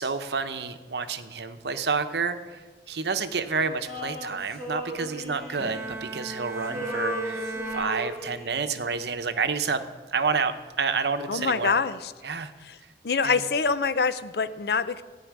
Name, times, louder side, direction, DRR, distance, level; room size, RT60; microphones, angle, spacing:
voice 1, 0.0-2.6 2.9-9.8 10.1-11.8 12.2-12.5 13.2-13.3, right 5 dB, 75° right, 9 dB, 0.8 m, -29 dB
Male singing, 3.9-6.3 6.6-8.7, left 1 dB, 5° left, 3.3 m, -36 dB
Bowed string instrument, 5.6-8.7, right 2 dB, 15° right, 0.9 m, -37 dB
voice 2, 11.3-12.1 12.6-12.8 13.0-15.0, left 5 dB, 65° left, 13 dB, 0.6 m, -25 dB
14.0 x 5.6 x 9.4 m, 1.4 s
head